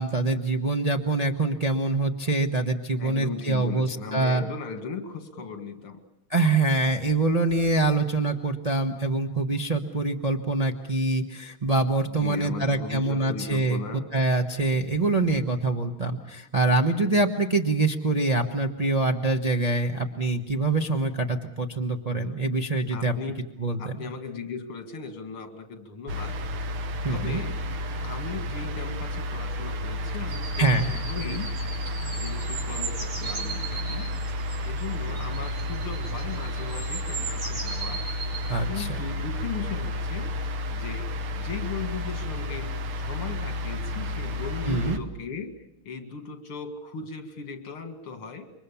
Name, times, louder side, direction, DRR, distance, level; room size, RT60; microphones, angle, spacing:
voice 1, 0.0-4.4 6.3-23.1 23.6-24.1 27.0-27.4 30.6-31.0 38.5-39.0 44.7-45.0, right 2 dB, 25° right, 2 dB, 0.9 m, -25 dB
voice 2, 3.0-6.0 12.1-14.1 22.9-23.5 23.8-26.4 27.1-27.6 28.0-31.6 32.1-34.2 34.6-38.1 38.7-40.4 40.7-45.5 45.8-48.5, left 5 dB, 80° left, 6 dB, 3.0 m, -37 dB
sound 1, 26.1-45.0, left 1 dB, 90° right, 2.1 m, -31 dB
sound 2, 30.3-38.4, right 4 dB, 60° right, 6.5 m, -38 dB
27.5 x 23.5 x 7.1 m, 0.84 s
omnidirectional pair, 2.3 m